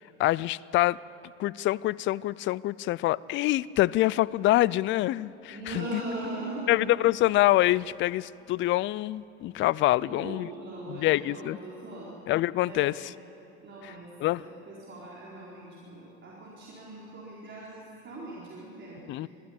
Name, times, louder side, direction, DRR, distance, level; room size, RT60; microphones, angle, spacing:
voice 1, 0.2-1.0 1.4-6.0 6.7-10.5 10.9-11.6 12.3-13.1 13.8-13.9 14.2-14.4 19.1-19.3, left 16 dB, 35° left, 21 dB, 0.4 m, -25 dB
voice 2, 5.5-6.7 10.0-12.1 12.6-13.1 13.6-19.3, right 2 dB, 35° right, -5 dB, 4.4 m, -40 dB
21.0 x 14.5 x 8.6 m, 2.7 s
hypercardioid pair, 85°, 35 cm